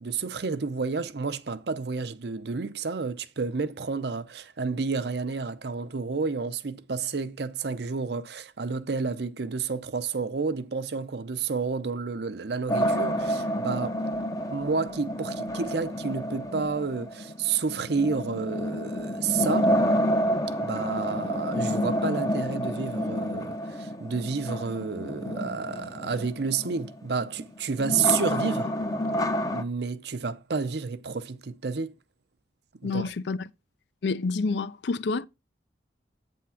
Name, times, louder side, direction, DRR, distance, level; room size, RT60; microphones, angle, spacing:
voice 1, 0.0-14.0 14.5-19.7 20.6-28.7 29.5-31.9 32.8-33.1, right 5 dB, 65° right, 0.6 m, -30 dB
sound 1, 12.7-29.6, equal, 20° left, 0.5 m, -29 dB
voice 2, 32.8-33.5 34.0-35.3, left 4 dB, 70° left, 0.5 m, -28 dB
8.5 x 3.6 x 5.7 m
head